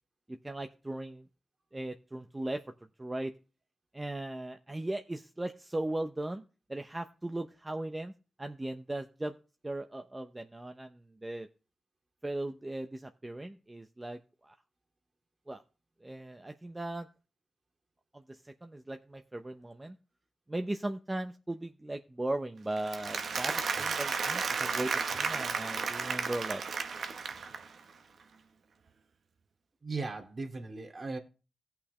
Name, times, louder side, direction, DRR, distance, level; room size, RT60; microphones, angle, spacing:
voice 1, 0.4-1.2 1.7-2.6 3.0-3.3 3.9-6.4 6.7-8.1 8.4-9.3 9.6-11.5 12.2-14.5 15.5-15.6 16.0-17.1 18.1-20.0 20.5-26.6, right 1 dB, 20° right, 0.8 m, -38 dB
Applause, 22.8-27.8, right 5 dB, 75° right, 1.0 m, -33 dB
voice 2, 29.8-31.2, right 3 dB, 45° right, 2.3 m, -37 dB
17.0 x 5.8 x 3.2 m
cardioid pair, 60°, 0 cm